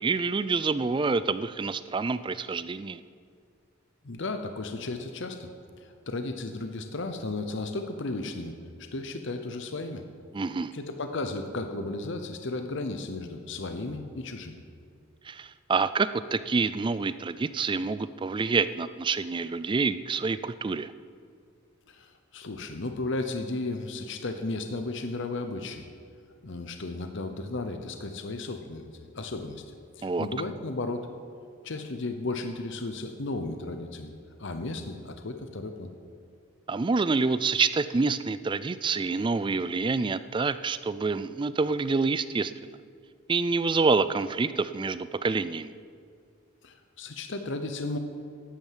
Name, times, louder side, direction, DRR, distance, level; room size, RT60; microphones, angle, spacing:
voice 1, 0.0-3.0 10.3-10.7 15.2-20.9 30.0-30.3 36.7-42.5 43.3-45.7, right 4 dB, 25° right, 14 dB, 0.3 m, -27 dB
voice 2, 4.0-5.5 5.8-8.5 8.8-10.0 10.7-14.5 21.9-25.9 26.4-28.9 29.1-29.6 30.0-31.1 31.6-34.1 34.4-35.9 46.6-48.0, left 2 dB, 60° left, 7 dB, 0.8 m, -34 dB
11.5 x 8.8 x 7.4 m, 2.2 s
head